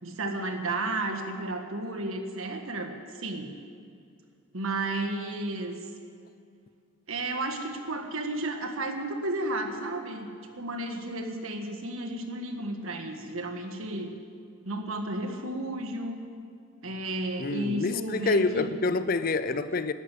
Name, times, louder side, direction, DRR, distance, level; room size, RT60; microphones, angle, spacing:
voice 1, 0.0-3.5 4.5-5.8 7.1-10.3 10.5-14.1 14.6-16.2 16.8-18.7, right 2 dB, 80° right, 1.6 m, -33 dB
voice 2, 17.4-19.9, left 3 dB, 40° left, 0.5 m, -27 dB
12.0 x 11.5 x 8.4 m
head